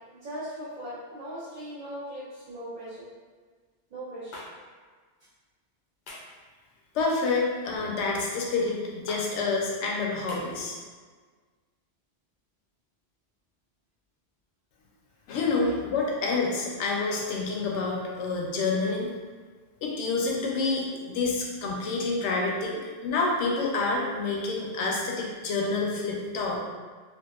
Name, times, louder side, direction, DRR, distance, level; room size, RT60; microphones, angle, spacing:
voice 1, 0.2-3.1 3.9-4.3, equal, 50° right, -12 dB, 0.7 m, -39 dB
sound 1, 4.3-4.5 6.1-6.3 7.7-8.0 9.1-9.2 10.3-10.4, left 2 dB, 60° left, 0.5 m, -42 dB
voice 2, 6.9-10.8 15.3-19.1 19.8-26.6, left 3 dB, 85° left, -2 dB, 0.9 m, -28 dB
2.7 x 2.4 x 2.3 m, 1.5 s
omnidirectional pair, 1.1 m